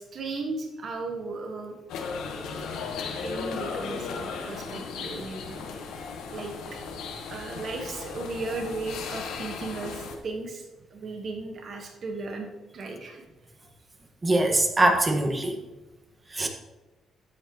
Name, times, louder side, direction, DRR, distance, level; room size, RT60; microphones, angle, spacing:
voice 1, 0.0-1.8 3.2-5.9 6.3-6.8 7.3-10.6 10.9-12.5 12.7-13.2, right 3 dB, 55° right, 2 dB, 1.5 m, -36 dB
sound 1, 1.9-10.2, left 5 dB, 90° left, 1.3 m, -36 dB
voice 2, 14.2-15.6 16.3-16.5, right 2 dB, 20° right, 3 dB, 1.6 m, -22 dB
12.5 x 7.7 x 3.1 m, 1.1 s
cardioid pair, 90°, 0 cm